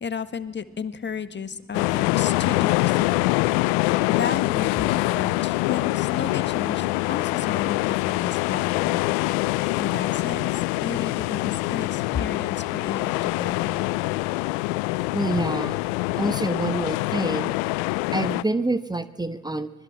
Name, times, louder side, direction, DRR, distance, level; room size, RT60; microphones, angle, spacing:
voice 1, 0.0-3.3 3.8-9.0 9.5-13.8, left 6 dB, 35° left, 12 dB, 1.8 m, -33 dB
sound 1, 1.7-18.4, left 21 dB, 80° left, 0.7 m, -24 dB
voice 2, 15.1-15.8 16.2-17.5 18.1-19.7, right 2 dB, 10° right, 13 dB, 1.3 m, -27 dB
25.0 x 20.5 x 7.4 m, 1.1 s
hypercardioid pair, 60°, 33 cm